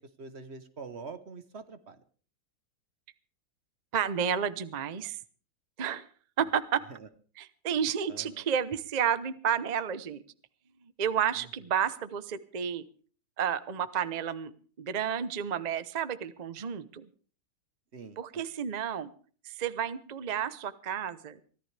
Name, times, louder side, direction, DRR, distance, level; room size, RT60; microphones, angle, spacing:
voice 1, 0.2-2.0 6.9-7.1 8.1-8.4 17.9-18.5, right 4 dB, 40° right, 10 dB, 1.0 m, -45 dB
voice 2, 3.9-5.2 5.8-6.1 6.4-6.8 7.4-10.2 10.8-12.8 13.4-14.5 14.8-17.1 18.2-19.1 19.4-21.4, right 8 dB, 65° right, 13 dB, 0.4 m, -31 dB
24.0 x 14.5 x 3.4 m, 0.42 s
omnidirectional pair, 2.3 m